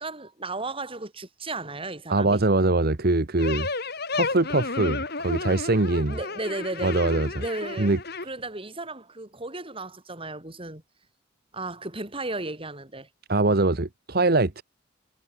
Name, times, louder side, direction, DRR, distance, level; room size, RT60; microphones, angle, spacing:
voice 1, 0.0-2.4 6.1-7.0 7.4-7.9 8.2-10.8 11.5-13.1, right 2 dB, 30° right, 5.2 m, -34 dB
voice 2, 2.1-3.7 4.1-6.2 6.8-7.3 7.8-8.0 13.3-14.6, right 2 dB, 55° right, 1.2 m, -22 dB
sound 1, 3.4-8.2, left 3 dB, 55° left, 4.2 m, -32 dB
head